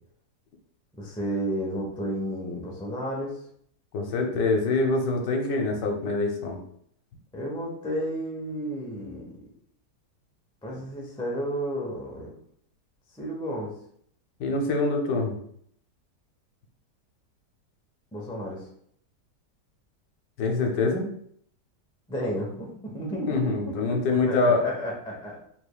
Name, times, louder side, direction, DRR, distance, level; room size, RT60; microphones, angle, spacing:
voice 1, 1.0-3.4 7.3-9.3 10.6-12.3 13.1-13.7 18.1-18.7 22.1-25.4, equal, 5° left, -2 dB, 0.3 m, -32 dB
voice 2, 3.9-6.6 14.4-15.4 20.4-21.1 23.3-24.7, left 3 dB, 80° left, 2 dB, 1.4 m, -25 dB
5.0 x 3.4 x 2.3 m, 0.66 s
omnidirectional pair, 1.9 m